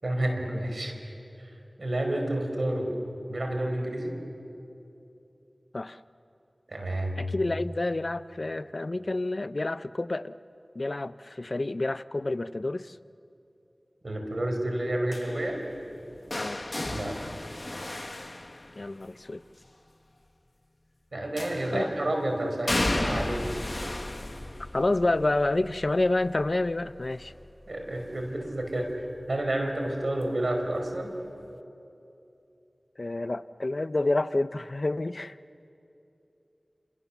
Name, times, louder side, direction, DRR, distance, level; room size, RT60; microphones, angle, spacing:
voice 1, 0.0-0.9 1.8-3.0 3.3-4.2 6.7-7.2 14.0-15.6 16.9-17.2 21.1-23.5 27.7-31.2, right 1 dB, 70° right, 3 dB, 4.7 m, -30 dB
voice 2, 7.2-10.4 10.7-13.0 16.3-16.6 18.8-19.4 21.7-21.9 24.7-27.3 33.0-35.4, left 2 dB, 60° left, 14 dB, 0.6 m, -28 dB
sound 1, 15.1-19.2 21.4-22.0 22.7-28.5 28.8-29.2 30.5-30.6, left 1 dB, 40° left, 1.2 m, -34 dB
29.0 x 27.5 x 7.2 m, 2.8 s
wide cardioid pair, 40°, 0 cm